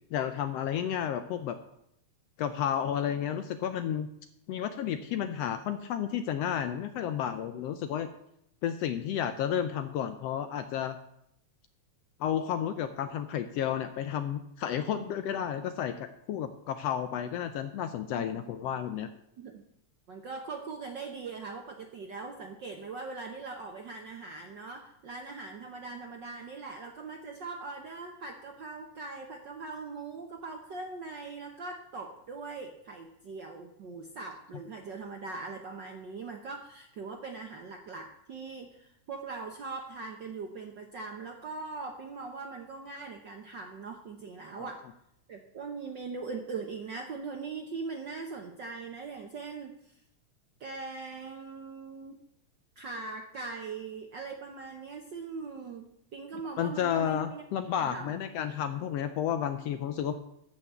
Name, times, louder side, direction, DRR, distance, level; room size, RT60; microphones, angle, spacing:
voice 1, 0.1-1.6 2.4-4.1 4.5-8.1 8.6-11.0 12.2-19.1 44.6-44.7 56.6-60.1, left 9 dB, 75° left, 10 dB, 1.5 m, -32 dB
voice 2, 20.1-44.8 45.3-49.9 50.6-52.2 52.8-58.2, right 4 dB, 65° right, 3 dB, 1.1 m, -41 dB
13.5 x 5.9 x 8.0 m, 0.77 s
omnidirectional pair, 3.3 m